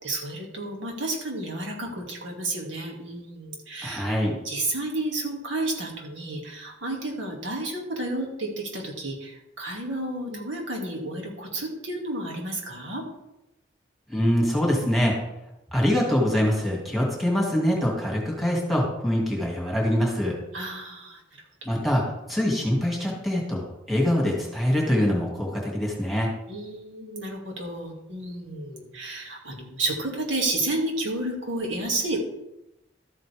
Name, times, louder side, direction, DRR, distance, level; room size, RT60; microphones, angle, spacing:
voice 1, 0.0-4.1 4.4-13.0 20.5-21.2 26.5-32.2, right 2 dB, 80° right, 0 dB, 2.5 m, -31 dB
voice 2, 3.8-4.4 14.1-15.2 15.7-20.4 21.7-22.0 22.3-26.3, equal, ahead, -3 dB, 2.4 m, -24 dB
13.0 x 8.8 x 3.6 m, 0.89 s
head